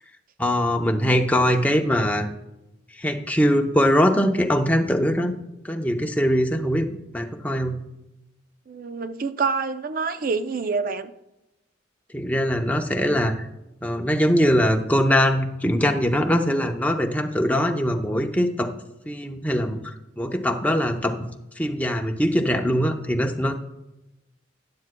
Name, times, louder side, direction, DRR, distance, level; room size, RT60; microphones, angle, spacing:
voice 1, 0.4-2.3 3.0-5.3 5.6-7.8 12.1-13.3 13.8-18.7 19.1-19.8 20.2-21.2 21.6-23.5, equal, 10° left, 3 dB, 0.7 m, -22 dB
voice 2, 8.7-11.1, right 4 dB, 50° right, 11 dB, 0.5 m, -26 dB
12.5 x 9.5 x 2.2 m, 0.91 s
head